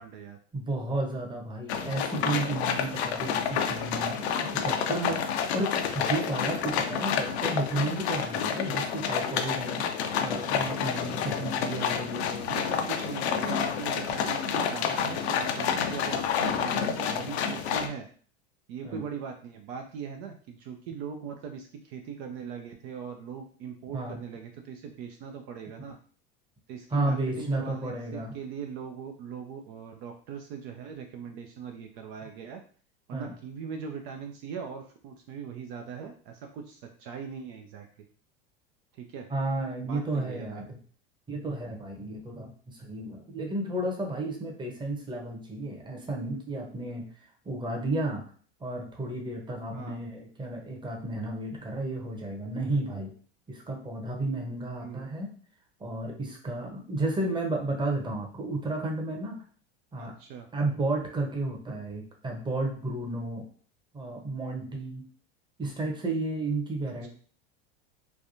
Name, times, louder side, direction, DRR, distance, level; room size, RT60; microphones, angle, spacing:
voice 1, 0.0-0.4 11.3-12.1 12.5-18.1 18.7-26.0 26.7-32.6 33.1-37.9 38.9-39.3 39.8-40.6 49.7-50.0 54.8-55.1 60.0-60.5 67.0-67.1, right 6 dB, 55° right, 4 dB, 0.5 m, -40 dB
voice 2, 0.5-12.5 18.8-19.0 23.9-24.2 26.9-28.3 33.1-33.3 39.3-40.8 41.3-47.1 47.4-48.3 48.6-53.1 53.5-55.3 55.8-59.4 59.9-60.1 60.5-63.4 63.9-65.0 65.6-67.1, right 2 dB, 15° right, 1 dB, 0.9 m, -32 dB
sound 1, 1.7-17.9, left 7 dB, 75° left, 0.6 m, -29 dB
3.3 x 2.2 x 2.6 m, 0.44 s
hypercardioid pair, 95°, 32 cm